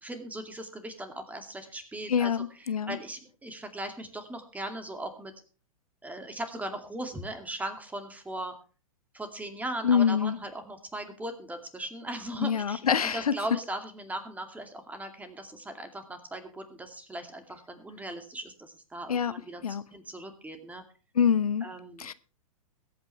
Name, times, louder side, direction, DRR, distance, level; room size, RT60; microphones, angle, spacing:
voice 1, 0.0-2.3 2.6-5.3 6.0-8.5 9.1-20.8 21.6-22.1, right 1 dB, 10° right, 2.4 m, -39 dB
voice 2, 2.1-3.0 9.8-10.4 12.4-13.4 19.1-19.4 19.6-19.8 21.1-21.7 22.0-22.1, left 7 dB, 80° left, 0.7 m, -25 dB
22.0 x 8.8 x 3.4 m
hypercardioid pair, 105°, 19 cm